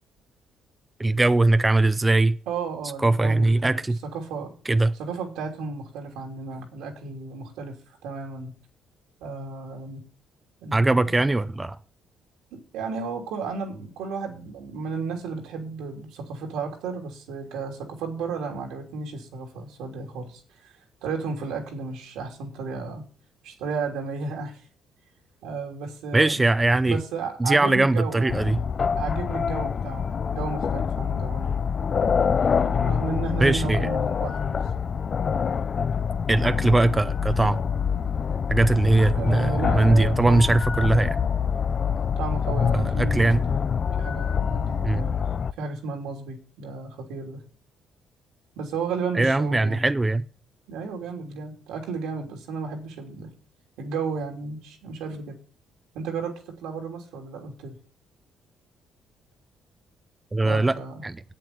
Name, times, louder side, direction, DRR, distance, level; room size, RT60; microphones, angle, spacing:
voice 1, 1.0-2.4 3.0-4.0 4.7-4.9 10.7-11.8 26.1-27.0 27.4-28.6 33.4-33.9 36.3-37.6 38.5-41.2 42.7-43.4 44.8-45.0 49.1-50.3 60.3-60.8 61.0-61.2, right 2 dB, 15° right, 0.5 m, -21 dB
voice 2, 2.5-3.8 4.1-4.5 5.0-8.5 9.2-10.0 10.6-11.0 12.5-23.1 23.4-24.6 25.4-26.4 26.9-28.6 29.0-31.5 32.6-34.6 39.1-40.5 40.8-41.0 42.2-43.6 44.0-45.2 45.6-47.4 48.6-49.8 50.7-53.3 53.8-55.4 55.9-57.8 60.4-61.0, right 4 dB, 90° right, 3.1 m, -33 dB
sound 1, 28.3-45.5, left 6 dB, 40° left, 0.4 m, -26 dB
8.4 x 7.6 x 8.1 m
cardioid pair, 100°, 0 cm